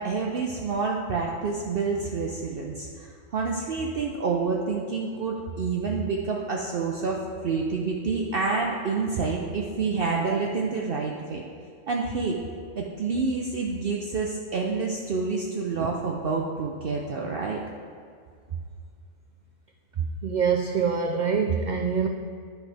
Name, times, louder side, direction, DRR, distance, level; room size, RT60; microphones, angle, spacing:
voice 1, 0.0-11.4 11.9-12.4 12.8-17.6, right 4 dB, 55° right, -1 dB, 0.8 m, -28 dB
voice 2, 20.0-22.1, right 6 dB, 80° right, 4 dB, 0.4 m, -25 dB
10.5 x 5.8 x 3.4 m, 2.2 s
omnidirectional pair, 1.3 m